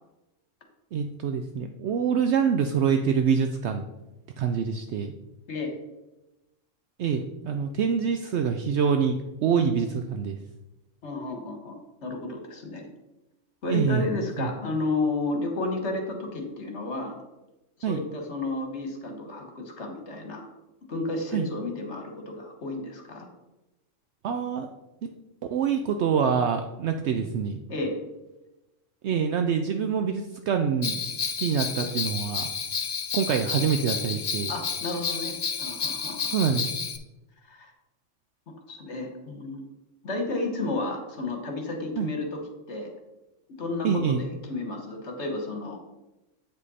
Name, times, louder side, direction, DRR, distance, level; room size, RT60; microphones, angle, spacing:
voice 1, 0.9-3.8 4.4-5.1 7.0-10.4 13.7-14.1 14.4-14.5 17.8-18.0 21.3-21.5 24.2-24.7 25.5-27.6 29.0-31.0 31.4-32.5 33.1-34.5 36.3-36.7 42.0-42.1 43.8-44.2, right 6 dB, 65° right, 6 dB, 0.8 m, -25 dB
voice 2, 11.0-11.7 12.0-12.9 13.6-17.2 17.9-20.5 20.9-23.3 27.7-27.9 34.5-36.3 37.5-37.7 38.7-39.6 40.0-42.4 42.7-42.9 43.6-45.8, left 2 dB, 60° left, 4 dB, 1.5 m, -32 dB
Bell, 30.8-37.0, left 6 dB, 45° left, 0.5 m, -31 dB
8.3 x 5.1 x 4.2 m, 0.99 s
omnidirectional pair, 1.3 m